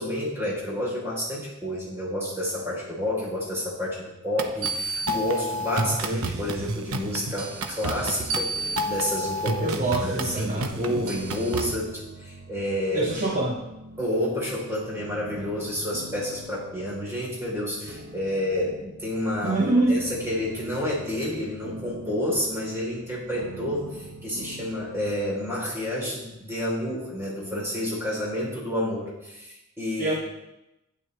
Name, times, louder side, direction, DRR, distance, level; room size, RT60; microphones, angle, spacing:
voice 1, 0.0-13.3 14.0-30.1, left 1 dB, 10° right, -5 dB, 3.6 m, -29 dB
sound 1, 4.4-11.8, right 2 dB, 85° right, 0.8 m, -30 dB
sound 2, 8.5-27.5, right 1 dB, 65° right, 1.1 m, -44 dB
voice 2, 9.6-10.9 12.9-13.6 19.4-20.0 30.0-30.1, right 2 dB, 40° right, -2 dB, 1.1 m, -25 dB
12.0 x 9.3 x 3.3 m, 0.93 s
head